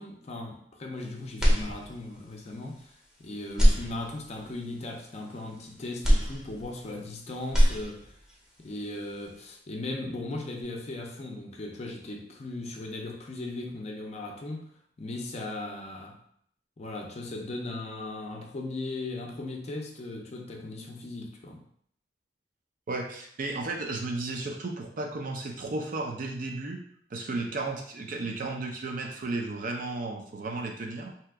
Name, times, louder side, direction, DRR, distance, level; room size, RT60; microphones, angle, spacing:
voice 1, 0.0-2.9 3.2-8.1 8.6-14.7 15.0-16.2 16.8-21.6, left 2 dB, 35° left, 1 dB, 0.5 m, -37 dB
sound 1, 1.4-2.3 2.7-2.8 3.5-4.5 6.0-7.1 7.4-8.3, equal, 5° right, 0.7 m, -24 dB
voice 2, 22.9-26.8 27.1-31.1, right 2 dB, 50° right, 2 dB, 0.5 m, -34 dB
2.8 x 2.3 x 3.4 m, 0.64 s
head